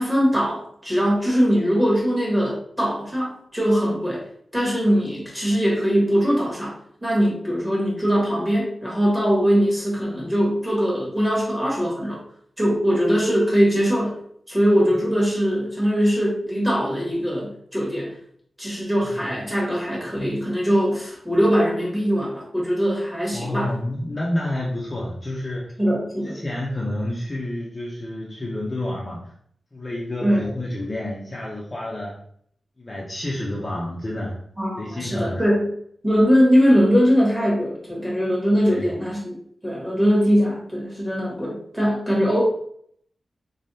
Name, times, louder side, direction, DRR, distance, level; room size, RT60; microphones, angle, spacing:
voice 1, 0.0-4.2 4.5-12.2 12.6-14.1 14.5-18.1 18.6-23.7 25.8-26.4 30.2-30.5 34.6-35.7 36.0-39.3 39.6-42.4, equal, 5° right, -4 dB, 1.4 m, -21 dB
voice 2, 23.3-25.8 26.2-29.3 29.7-32.2 32.8-34.4 34.8-35.4 38.7-38.9, left 1 dB, 20° left, -5 dB, 0.6 m, -29 dB
3.7 x 3.4 x 2.7 m, 0.66 s
wide cardioid pair, 150°, 0 cm